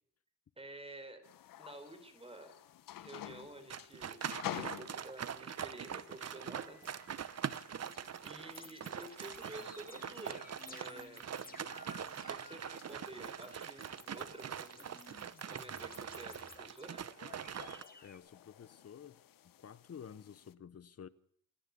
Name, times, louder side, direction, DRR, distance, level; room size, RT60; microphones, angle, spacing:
voice 1, 0.6-1.2 1.6-2.5 3.0-6.8 8.2-11.3 12.3-14.8 15.5-17.0, right 1 dB, 15° right, 4.7 m, -51 dB
sound 1, 1.2-20.5, left 12 dB, 80° left, 0.9 m, -52 dB
sound 2, 3.7-17.8, right 8 dB, 50° right, 1.0 m, -43 dB
sound 3, 5.0-5.1 5.5-6.1 6.6-18.2, left 3 dB, 25° left, 2.2 m, -57 dB
voice 2, 18.0-21.1, left 7 dB, 45° left, 1.0 m, -52 dB
28.5 x 10.5 x 8.5 m
cardioid pair, 95°, 33 cm